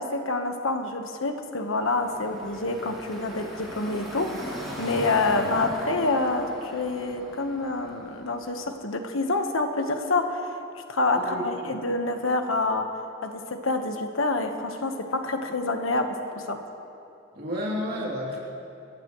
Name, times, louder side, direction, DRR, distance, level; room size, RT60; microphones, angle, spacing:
voice 1, 0.0-4.4 4.8-10.6 10.9-12.9 13.2-16.6, left 2 dB, 90° left, 5 dB, 1.3 m, -27 dB
Car passing by / Traffic noise roadway noise, 1.7-8.6, equal, ahead, 3.7 m, -38 dB
voice 2, 11.1-11.7 17.3-18.4, left 1 dB, 50° right, -4 dB, 3.1 m, -31 dB
26.0 x 14.5 x 3.2 m, 2.8 s
head